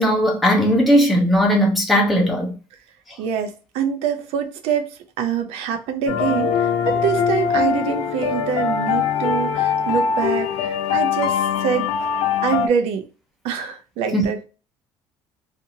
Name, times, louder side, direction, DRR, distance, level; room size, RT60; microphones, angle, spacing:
voice 1, 0.0-2.6 3.1-3.2 14.1-14.2, equal, ahead, 0.7 m, -17 dB
voice 2, 3.2-11.9 12.4-13.0 13.4-14.4, right 7 dB, 75° right, 0.5 m, -25 dB
sound 1, 6.1-12.7, left 7 dB, 75° left, 0.6 m, -22 dB
2.7 x 2.5 x 2.7 m
cardioid pair, 110°, 10 cm